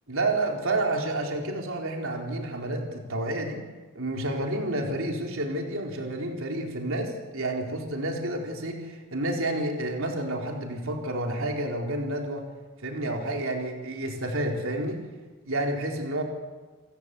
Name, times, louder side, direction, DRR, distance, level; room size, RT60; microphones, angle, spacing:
voice 1, 0.1-3.6 3.9-12.4 12.8-15.0 15.4-16.2, right 1 dB, 60° right, 1 dB, 4.4 m, -30 dB
29.5 x 16.5 x 8.5 m, 1.3 s
head